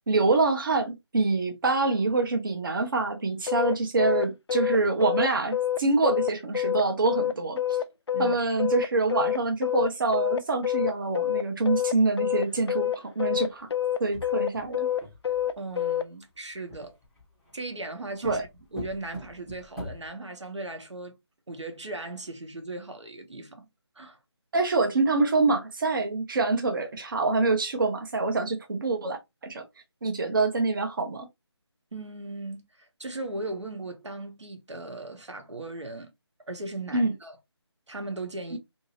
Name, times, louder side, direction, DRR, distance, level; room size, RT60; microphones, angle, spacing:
voice 1, 0.1-7.6 8.2-13.7 14.0-14.9 18.2-18.4 24.5-29.6 30.0-31.3 36.9-37.1 38.5-38.6, right 3 dB, 50° right, 0.7 m, -26 dB
sound 1, 3.5-16.1, left 11 dB, 65° left, 0.4 m, -27 dB
sound 2, 14.0-15.6 16.7-17.5 18.2-20.1, equal, ahead, 0.6 m, -41 dB
voice 2, 15.6-17.0 17.5-21.2 21.5-23.7 24.0-24.2 31.9-36.1 36.5-37.4 37.9-38.6, right 2 dB, 85° right, 1.0 m, -38 dB
2.8 x 2.7 x 2.9 m
figure-of-eight pair, 165°, 15 cm